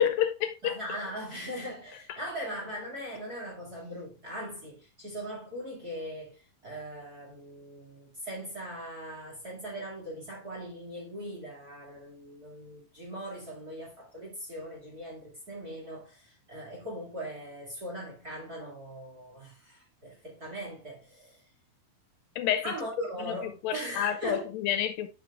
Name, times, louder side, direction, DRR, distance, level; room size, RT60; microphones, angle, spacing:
voice 1, 0.0-0.8 22.4-22.7 23.6-25.1, left 10 dB, 80° left, 2.3 m, -28 dB
voice 2, 0.6-21.4 22.6-24.5, equal, 30° right, 1.9 m, -40 dB
10.0 x 6.1 x 2.3 m
omnidirectional pair, 4.3 m